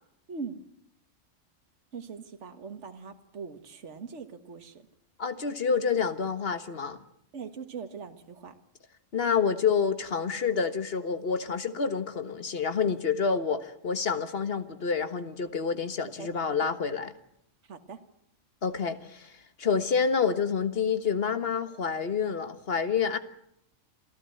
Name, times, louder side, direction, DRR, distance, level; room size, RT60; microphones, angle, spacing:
voice 1, 0.3-0.6 1.9-4.8 7.3-8.5 16.2-16.3 16.6-16.7 17.7-18.0, right 5 dB, 65° right, 1.8 m, -41 dB
voice 2, 5.2-7.0 9.1-17.1 18.6-19.3 19.6-23.2, left 6 dB, 50° left, 1.6 m, -28 dB
27.5 x 16.0 x 7.8 m
omnidirectional pair, 1.3 m